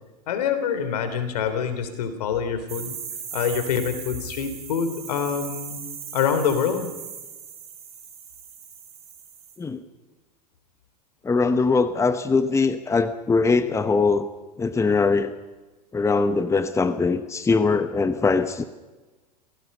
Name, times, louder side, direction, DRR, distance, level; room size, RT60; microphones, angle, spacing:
voice 1, 0.3-3.0 3.3-5.8 6.1-6.9, left 7 dB, 70° left, 9 dB, 3.4 m, -25 dB
sound 1, 2.7-9.6, right 7 dB, 30° right, 6.0 m, -38 dB
voice 2, 11.2-14.3 14.6-15.3 15.9-18.6, left 4 dB, 15° left, 12 dB, 1.1 m, -21 dB
28.0 x 17.5 x 5.4 m, 1.2 s
hypercardioid pair, 90°, 21 cm